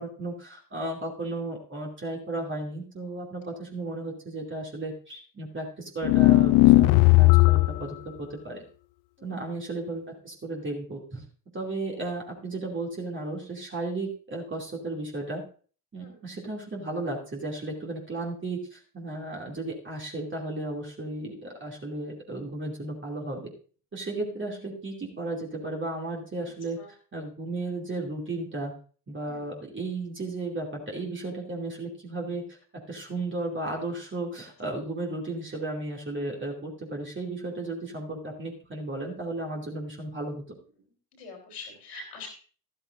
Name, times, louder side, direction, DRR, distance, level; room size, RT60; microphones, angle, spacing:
voice 1, 0.0-8.6 9.2-11.2 11.5-15.4 15.9-23.5 23.9-26.8 27.1-28.7 29.1-40.4, right 2 dB, 25° right, -2 dB, 2.7 m, -34 dB
sound 1, 6.0-7.8, left 20 dB, 55° left, 0.6 m, -17 dB
voice 2, 9.2-9.5 16.0-16.2 26.4-26.9 29.2-29.5 41.1-42.3, left 4 dB, 75° left, 1 dB, 4.0 m, -45 dB
13.5 x 13.0 x 2.6 m, 0.41 s
figure-of-eight pair, 50°, 47 cm